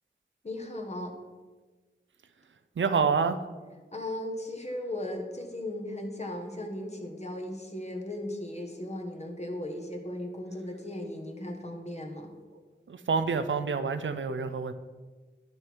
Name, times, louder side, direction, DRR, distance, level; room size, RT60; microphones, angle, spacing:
voice 1, 0.4-1.1 3.9-12.3, left 1 dB, 35° left, 2 dB, 1.5 m, -37 dB
voice 2, 2.8-3.4 12.9-14.7, right 5 dB, 85° right, 10 dB, 0.6 m, -27 dB
10.5 x 6.3 x 4.7 m, 1.3 s
wide cardioid pair, 65°, 19 cm